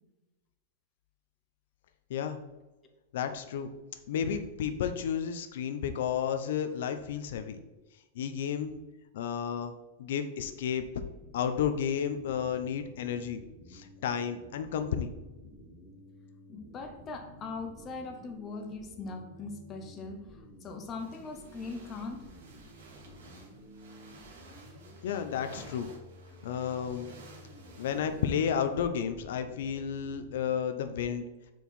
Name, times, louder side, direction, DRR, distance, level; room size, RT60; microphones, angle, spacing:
voice 1, 3.1-3.7 4.1-7.6 8.2-8.8 9.1-9.7 10.0-11.0 11.3-13.4 13.7-15.1 25.0-25.9 26.4-27.1 27.8-31.2, left 8 dB, 65° left, 8 dB, 0.5 m, -32 dB
sound 1, 11.2-30.4, equal, 15° right, 1.0 m, -52 dB
voice 2, 16.5-22.2, left 3 dB, 20° left, 4 dB, 0.6 m, -41 dB
sound 2, 21.0-28.8, right 3 dB, 85° right, 1.8 m, -54 dB
4.6 x 4.4 x 5.3 m, 1.1 s
supercardioid pair, 175°, 0 cm